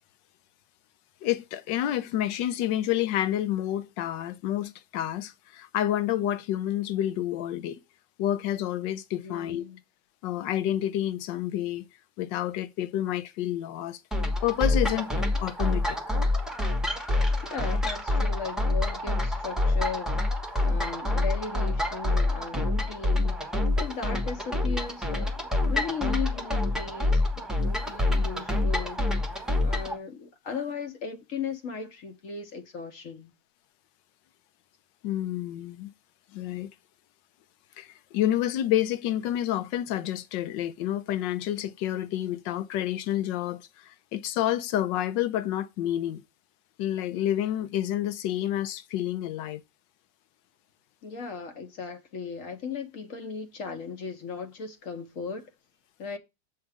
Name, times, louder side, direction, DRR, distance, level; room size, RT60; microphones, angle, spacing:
voice 1, 1.2-7.8 8.2-9.6 10.2-11.9 12.2-14.0 14.4-16.0 24.7-24.8 35.0-35.9 36.3-36.7 37.8-46.2 46.8-49.6, left 12 dB, 85° left, 1.4 m, -29 dB
voice 2, 9.2-9.8 17.4-20.2 20.6-23.4 23.8-27.2 27.6-29.0 29.6-33.3 51.0-55.5 56.0-56.2, left 5 dB, 50° left, 1.2 m, -37 dB
sound 1, 14.1-30.0, left 2 dB, ahead, 0.8 m, -27 dB
7.6 x 3.6 x 4.9 m
omnidirectional pair, 1.9 m